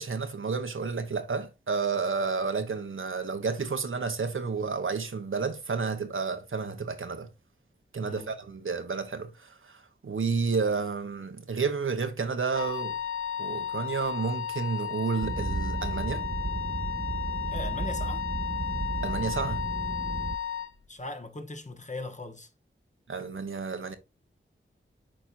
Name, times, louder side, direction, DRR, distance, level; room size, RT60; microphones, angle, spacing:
voice 1, 0.0-7.3 7.9-13.0 13.4-16.2 19.0-19.7 23.1-24.0, right 5 dB, 75° right, 1.0 m, -31 dB
Wind instrument woodwind instrument, 12.5-20.7, left 9 dB, 90° left, 0.6 m, -34 dB
sound 1, 15.2-20.4, right 3 dB, 20° right, 0.4 m, -34 dB
voice 2, 17.5-18.2 20.9-22.5, left 2 dB, 35° left, 1.3 m, -39 dB
8.8 x 4.5 x 2.6 m
wide cardioid pair, 55°, 21 cm